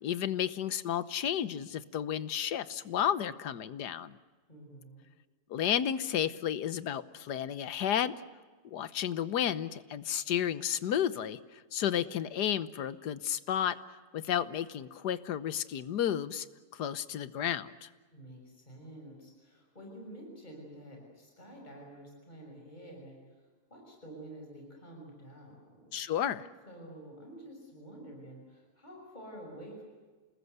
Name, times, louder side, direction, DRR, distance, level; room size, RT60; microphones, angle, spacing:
voice 1, 0.0-4.2 5.5-8.1 8.6-13.8 14.1-16.5 16.7-17.9 25.9-26.5, left 9 dB, 90° left, 15 dB, 1.6 m, -32 dB
voice 2, 4.5-5.1 18.1-25.9 26.7-29.8, right 1 dB, 25° left, 1 dB, 6.3 m, -49 dB
28.5 x 20.5 x 8.1 m, 1.4 s
omnidirectional pair, 1.7 m